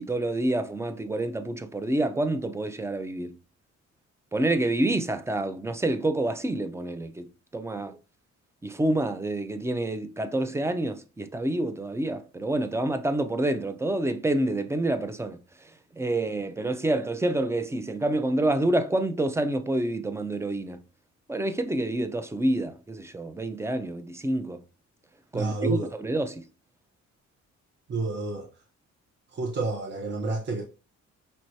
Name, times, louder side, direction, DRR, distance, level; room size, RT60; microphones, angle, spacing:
voice 1, 0.0-3.4 4.3-8.0 8.6-15.4 15.9-20.8 21.3-24.6 25.3-26.4, right 1 dB, 10° right, 0.5 m, -28 dB
voice 2, 25.3-25.9 27.9-28.5 29.3-30.6, right 3 dB, 35° right, 0.9 m, -29 dB
5.4 x 3.0 x 2.6 m
cardioid pair, 90°, 30 cm